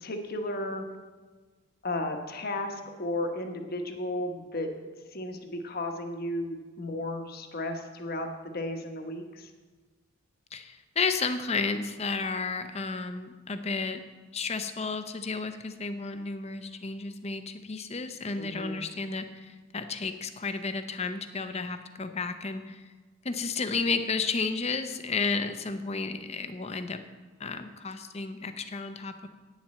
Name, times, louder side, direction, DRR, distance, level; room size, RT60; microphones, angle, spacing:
voice 1, 0.0-0.8 1.8-4.7 5.1-9.5 18.4-18.8, left 1 dB, 50° left, 4 dB, 1.1 m, -34 dB
voice 2, 10.5-14.0 14.3-22.8 23.2-27.0 27.4-29.3, left 4 dB, 30° left, 9 dB, 0.6 m, -32 dB
9.2 x 7.3 x 7.5 m, 1.4 s
head